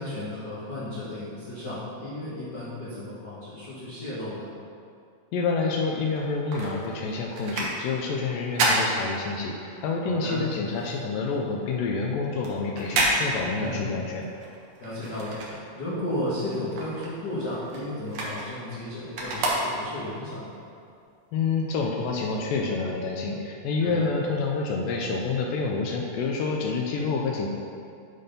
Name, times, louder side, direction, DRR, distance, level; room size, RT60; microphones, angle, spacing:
voice 1, 0.0-4.5 10.0-10.5 13.6-14.0 14.8-20.6 23.8-24.1, left 1 dB, 55° left, -12 dB, 1.1 m, -34 dB
voice 2, 5.3-14.2 21.3-27.5, left 4 dB, 80° left, 0 dB, 2.1 m, -28 dB
sound 1, 6.1-9.8 10.1-16.1 16.4-20.2 20.7-20.8, right 2 dB, 65° right, 1.7 m, -30 dB
9.9 x 4.3 x 5.3 m, 2.4 s
omnidirectional pair, 4.5 m